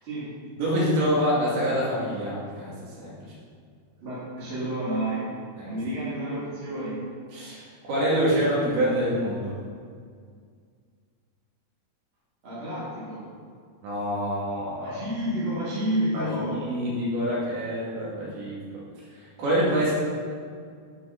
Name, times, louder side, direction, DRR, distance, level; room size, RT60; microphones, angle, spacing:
voice 1, 0.6-3.1 5.6-5.7 7.3-9.5 13.8-15.0 16.1-18.6 19.4-19.9, equal, 75° right, -7 dB, 4.4 m, -26 dB
voice 2, 4.0-5.3 5.6-7.0 12.4-13.2 14.8-16.6, right 1 dB, 35° right, -12 dB, 2.9 m, -30 dB
11.0 x 6.3 x 4.2 m, 2.1 s
omnidirectional pair, 4.6 m